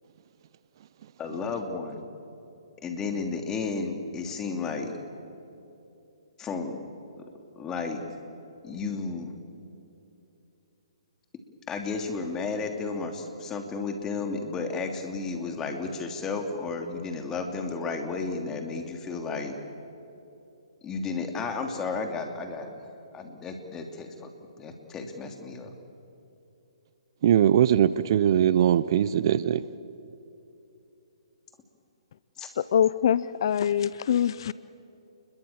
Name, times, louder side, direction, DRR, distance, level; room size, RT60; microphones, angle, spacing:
voice 1, 1.2-2.0 2.8-4.9 6.4-6.8 7.5-8.0 8.6-9.4 11.7-19.6 20.8-22.8 23.1-24.3 24.6-25.7 32.4-32.5, left 4 dB, 15° left, 4 dB, 3.0 m, -33 dB
voice 2, 27.2-29.6, right 10 dB, 50° right, 17 dB, 0.8 m, -21 dB
voice 3, 32.6-34.5, left 9 dB, 55° left, 17 dB, 0.6 m, -24 dB
29.5 x 22.0 x 7.4 m, 2.9 s
hypercardioid pair, 140°, 3 cm